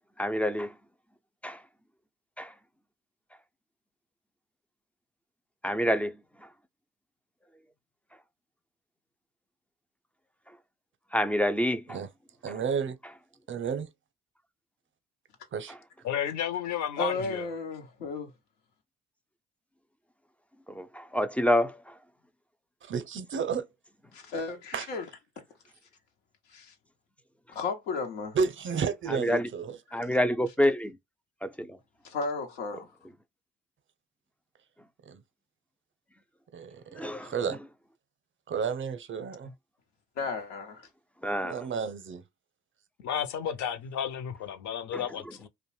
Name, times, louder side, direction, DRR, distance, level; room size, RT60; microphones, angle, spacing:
voice 1, 0.2-0.7 1.4-1.6 2.4-2.5 5.6-6.5 11.1-12.0 20.7-21.9 29.1-29.5 29.9-31.0 31.4-31.8 37.0-37.3 41.2-41.6 44.9-45.0, equal, 5° left, 0.3 m, -28 dB
voice 2, 12.4-13.0 13.5-13.9 15.5-15.8 22.8-23.7 24.7-24.9 28.3-29.8 35.1-35.2 36.5-37.6 38.5-39.5 41.4-42.2, right 6 dB, 35° right, 0.6 m, -32 dB
voice 3, 16.0-17.5 43.0-45.5, left 9 dB, 60° left, 0.6 m, -32 dB
voice 4, 17.0-18.3 24.1-25.1 26.5-26.7 27.5-28.4 32.0-32.9 40.2-40.9, left 3 dB, 90° left, 0.8 m, -34 dB
2.5 x 2.2 x 3.1 m
hypercardioid pair, 60°, 33 cm